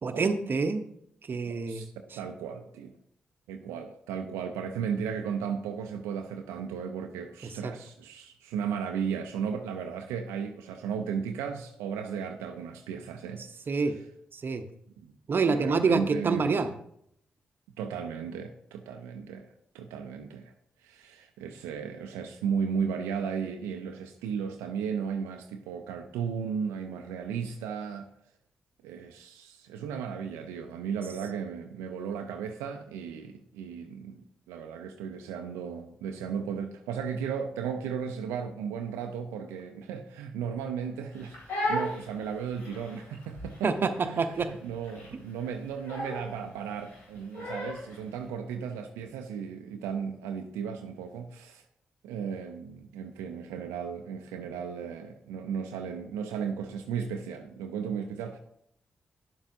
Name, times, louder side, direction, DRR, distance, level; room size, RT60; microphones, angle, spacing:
voice 1, 0.0-0.8 1.3-1.8 7.4-7.7 13.7-14.0 14.3-14.6 15.3-16.7 43.6-43.9 44.2-44.5, right 4 dB, 50° right, 9 dB, 0.7 m, -27 dB
voice 2, 1.7-3.0 3.5-13.4 15.0-15.1 15.5-16.7 17.8-19.5 19.7-20.5 20.8-28.1 28.8-34.2 34.5-51.6 52.0-58.4, right 7 dB, 85° right, 5 dB, 0.4 m, -35 dB
Crying sobbing, 41.1-48.0, left 1 dB, 75° left, 2.6 m, -36 dB
9.5 x 7.3 x 2.7 m, 0.71 s
hypercardioid pair, 40°, 4 cm